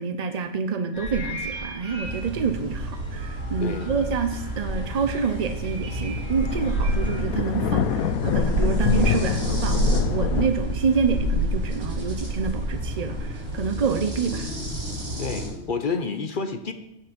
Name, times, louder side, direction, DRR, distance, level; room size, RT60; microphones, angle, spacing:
voice 1, 0.0-9.8 10.1-14.5, right 5 dB, 50° right, 8 dB, 0.5 m, -27 dB
sound 1, 0.9-7.2, equal, 5° left, 3.4 m, -38 dB
sound 2, 2.0-15.5, right 1 dB, 85° right, 5.7 m, -28 dB
voice 2, 3.6-3.9 15.2-16.7, left 4 dB, 45° left, 7 dB, 0.8 m, -29 dB
sound 3, 4.3-10.5, left 9 dB, 80° left, 1.1 m, -27 dB
16.0 x 5.9 x 5.2 m, 0.87 s
omnidirectional pair, 1.5 m